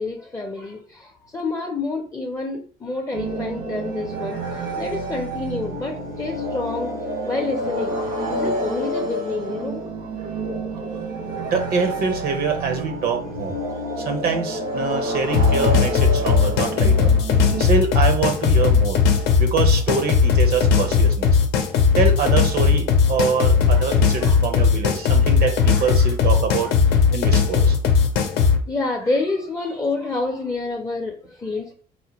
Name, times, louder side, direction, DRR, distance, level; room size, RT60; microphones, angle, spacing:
voice 1, 0.0-6.9 7.2-8.0 8.3-9.8 13.6-13.8 17.5-17.7 23.6-23.9 24.2-24.4 25.6-26.1 26.6-27.0 28.4-31.7, left 3 dB, 20° left, 2 dB, 0.6 m, -28 dB
sound 1, 3.1-17.6, right 1 dB, 90° right, 1.5 m, -28 dB
voice 2, 11.4-13.6 14.0-17.3 17.6-21.4 22.0-26.7 27.1-27.8, right 5 dB, 65° right, 6 dB, 0.7 m, -25 dB
sound 2, 15.3-28.6, left 6 dB, 80° left, 0.6 m, -18 dB
4.1 x 2.2 x 2.9 m, 0.42 s
cardioid pair, 110°, 17 cm